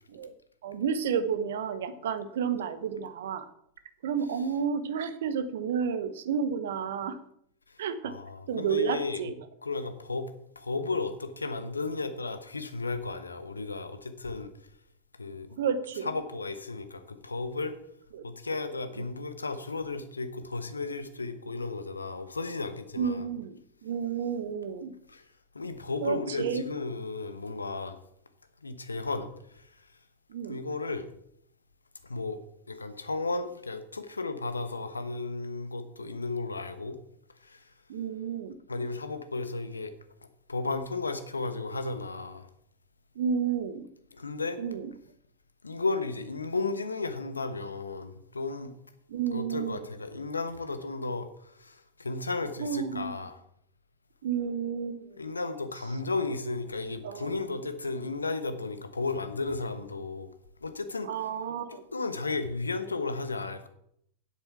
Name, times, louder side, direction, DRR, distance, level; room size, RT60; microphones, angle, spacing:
voice 1, 0.6-3.5 4.0-7.2 7.8-8.1 8.5-9.3 15.6-16.1 18.1-18.3 23.0-24.9 26.0-26.6 30.3-30.6 37.9-38.6 43.2-43.9 44.6-44.9 49.1-49.8 52.6-53.2 54.2-55.2 57.0-57.5 61.0-61.8, right 7 dB, 60° right, 1.0 m, -31 dB
voice 2, 8.0-9.2 9.6-14.5 15.2-15.5 16.0-17.8 18.2-23.3 25.1-25.2 25.5-28.0 28.6-29.3 29.5-29.7 30.5-31.1 32.0-32.4 32.7-37.0 37.4-37.6 38.7-39.9 40.5-42.5 44.1-44.6 45.6-48.7 49.3-53.4 55.2-60.3 60.6-61.1 61.9-63.7, left 3 dB, 80° left, 1.1 m, -34 dB
10.5 x 8.0 x 5.9 m
figure-of-eight pair, 90°, 0 cm